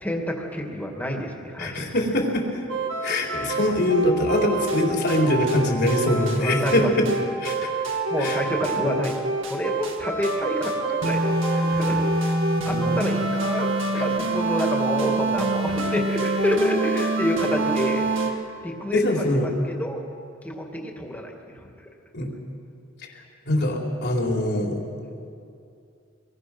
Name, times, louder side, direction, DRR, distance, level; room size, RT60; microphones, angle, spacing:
voice 1, 0.0-1.8 3.4-3.5 6.4-6.9 8.1-9.2 9.5-12.3 12.6-18.0 18.6-19.5 19.8-20.0 20.4-21.7 25.0-25.2, equal, 10° left, 1 dB, 2.5 m, -28 dB
voice 2, 1.6-2.6 3.0-7.1 7.4-7.7 8.2-8.4 12.7-13.0 13.9-14.0 18.9-19.5 22.1-22.3 23.5-24.8, left 1 dB, 55° left, -1 dB, 4.2 m, -23 dB
sound 1, 2.7-18.3, right 2 dB, 65° right, 2.2 m, -25 dB
26.0 x 22.0 x 6.3 m, 2.5 s
head